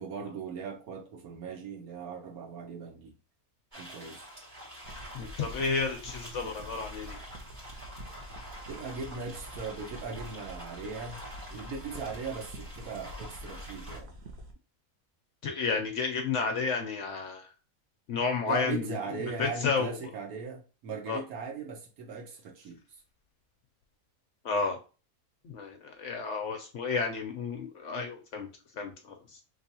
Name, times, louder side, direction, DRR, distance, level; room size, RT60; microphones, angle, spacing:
voice 1, 0.0-3.1 3.7-4.3 8.7-11.2 11.5-14.1 18.5-23.0, right 5 dB, 75° right, 1.3 m, -39 dB
sound 1, 3.7-14.0, equal, 30° right, 2.2 m, -47 dB
sound 2, 4.8-14.5, equal, 55° right, 0.9 m, -46 dB
voice 2, 5.1-7.2 15.4-17.5 18.1-19.0 19.2-19.9 21.1-21.2 24.4-24.8 25.4-28.5 28.7-29.2, left 5 dB, 65° left, 0.8 m, -31 dB
3.4 x 3.0 x 2.7 m
omnidirectional pair, 1.6 m